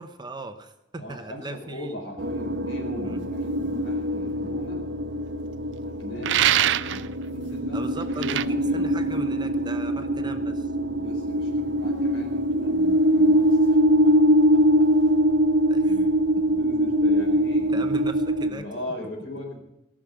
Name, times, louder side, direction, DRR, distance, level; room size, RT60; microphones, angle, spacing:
voice 1, 0.0-2.0 3.0-3.2 7.7-10.7 15.7-15.9 17.7-18.7, right 2 dB, 25° right, 8 dB, 0.8 m, -38 dB
voice 2, 1.0-4.8 5.8-9.0 11.0-14.1 14.5-15.1 15.8-18.0 18.5-19.6, left 1 dB, 70° left, -1 dB, 4.1 m, -39 dB
sound 1, 2.2-18.5, equal, 85° right, 1.0 m, -23 dB
sound 2, 6.2-7.1 8.2-8.5, right 11 dB, 70° right, 0.4 m, -22 dB
17.5 x 6.3 x 7.9 m, 0.89 s
head